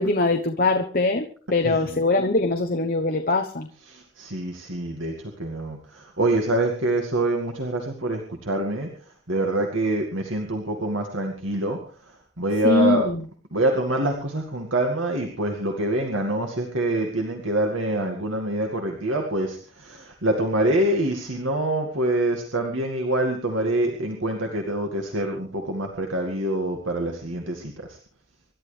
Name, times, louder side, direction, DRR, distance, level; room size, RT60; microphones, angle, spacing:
voice 1, 0.0-3.7 12.6-13.2, left 3 dB, 45° left, 4 dB, 1.0 m, -22 dB
voice 2, 3.9-5.1 5.4-8.9 9.3-11.8 12.4-13.0 13.5-28.0, right 1 dB, 80° right, 2 dB, 2.1 m, -25 dB
26.5 x 12.0 x 3.4 m, 0.41 s
head